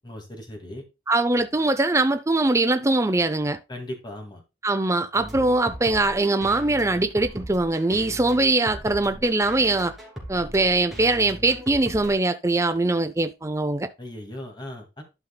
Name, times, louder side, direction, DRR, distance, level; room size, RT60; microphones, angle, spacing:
voice 1, 0.0-0.8 3.7-4.4 14.0-15.0, left 1 dB, 25° left, 2.3 m, -37 dB
voice 2, 1.1-3.6 4.6-9.9 10.3-13.9, right 2 dB, 15° right, 0.6 m, -22 dB
sound 1, 5.1-12.1, equal, ahead, 3.0 m, -39 dB
11.5 x 5.6 x 2.3 m
head